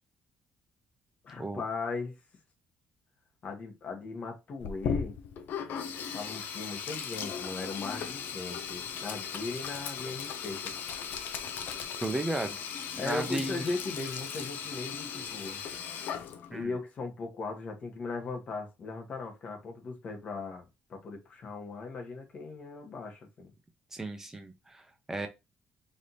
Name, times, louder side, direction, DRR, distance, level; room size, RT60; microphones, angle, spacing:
voice 1, 1.2-2.1 3.4-5.2 6.1-10.8 13.0-15.7 16.5-23.5, left 3 dB, 40° left, 1.2 m, -38 dB
Sink (filling or washing), 4.6-16.6, left 7 dB, 65° left, 0.6 m, -37 dB
voice 2, 12.0-12.6 12.9-13.6 16.5-16.7 23.9-25.3, right 2 dB, 10° right, 0.6 m, -34 dB
3.3 x 2.8 x 4.0 m
cardioid pair, 155°, 4 cm